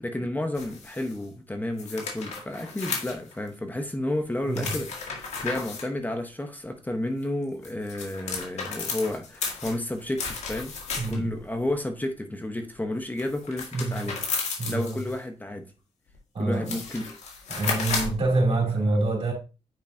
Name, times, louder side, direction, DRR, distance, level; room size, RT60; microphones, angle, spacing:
voice 1, 0.0-10.8 11.1-14.2 14.7-15.7 16.4-17.2, left 1 dB, 15° left, 1.1 m, -31 dB
sound 1, 0.6-1.2 1.8-3.5 4.5-5.9 7.4-11.4 13.2-15.2 16.1-16.2 16.5-18.2, left 4 dB, 85° left, 2.0 m, -33 dB
voice 2, 11.0-11.4 13.7-13.9 14.6-15.0 16.3-16.7 17.5-19.3, right 2 dB, 60° right, 2.9 m, -26 dB
9.1 x 5.2 x 2.8 m
cardioid pair, 75°, 11 cm